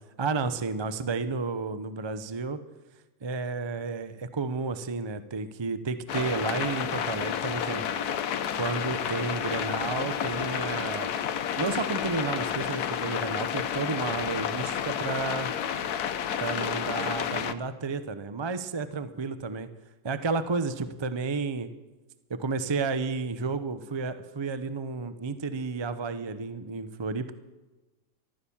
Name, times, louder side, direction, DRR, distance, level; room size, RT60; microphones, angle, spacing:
voice 1, 0.2-2.6 3.2-7.8 8.5-11.1 11.6-15.5 16.4-19.7 20.0-21.7 22.3-27.4, right 4 dB, 35° right, 11 dB, 0.4 m, -31 dB
sound 1, 6.1-17.5, left 8 dB, 75° left, 1.2 m, -30 dB
14.5 x 12.5 x 7.1 m, 1.1 s
omnidirectional pair, 1.7 m